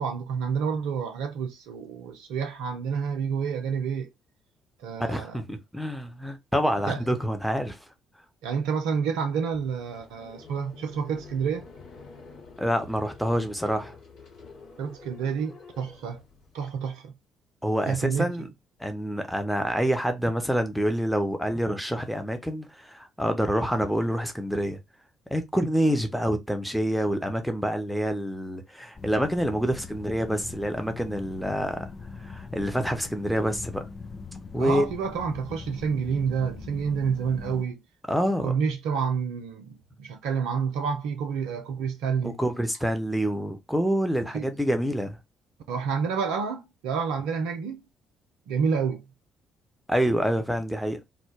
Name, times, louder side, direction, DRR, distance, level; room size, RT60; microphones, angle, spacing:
voice 1, 0.0-4.1 4.8-5.4 6.9-7.0 8.4-11.7 14.8-16.2 16.5-17.1 17.9-18.3 34.5-37.8 38.4-42.4 44.3-44.5 45.7-47.8 48.5-49.0, right 6 dB, 65° right, 0.4 m, -29 dB
voice 2, 5.1-7.8 12.6-14.0 17.6-18.5 18.8-24.8 25.3-31.9 32.2-33.8 34.5-34.8 38.1-38.5 42.2-45.2 49.9-51.0, equal, ahead, 0.7 m, -27 dB
sound 1, 9.5-16.7, left 4 dB, 60° left, 1.2 m, -48 dB
sound 2, 28.9-37.6, left 4 dB, 35° left, 0.4 m, -41 dB
2.2 x 2.1 x 3.2 m
figure-of-eight pair, 45°, 0 cm